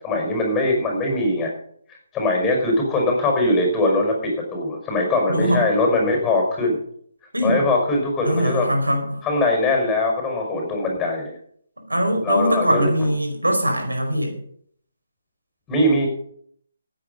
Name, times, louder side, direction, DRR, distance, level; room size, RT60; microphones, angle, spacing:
voice 1, 0.0-1.5 1.9-6.8 7.4-8.7 9.2-11.3 12.2-12.9 15.7-16.1, left 2 dB, 10° left, 1 dB, 5.5 m, -21 dB
voice 2, 5.3-5.6 7.3-7.6 8.2-9.2 11.8-14.3, equal, 90° right, 4 dB, 4.9 m, -22 dB
15.5 x 9.1 x 5.5 m, 0.63 s
figure-of-eight pair, 145°, 0 cm